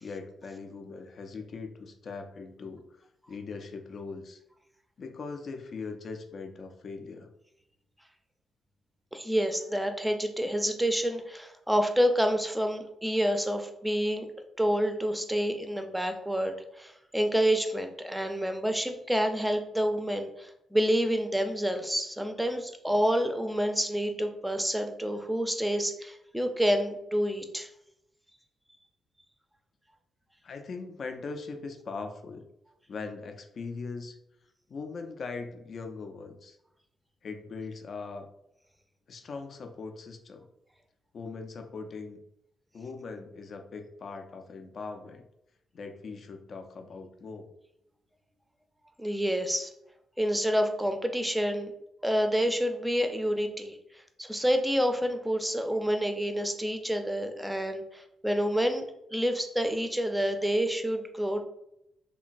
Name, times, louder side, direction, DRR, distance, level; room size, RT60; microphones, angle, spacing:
voice 1, 0.0-3.0 3.3-4.4 5.0-7.3 30.4-32.5 32.9-34.2 34.7-36.6 37.2-38.3 39.1-40.5 41.1-42.2 42.7-45.2 45.7-47.5, left 4 dB, 55° left, 5 dB, 0.4 m, -40 dB
voice 2, 9.1-14.3 14.6-27.7 49.0-49.7 50.2-51.7 52.0-58.9 59.1-61.4, equal, 5° right, 6 dB, 0.4 m, -28 dB
3.0 x 2.2 x 2.5 m, 0.81 s
hypercardioid pair, 40°, 0 cm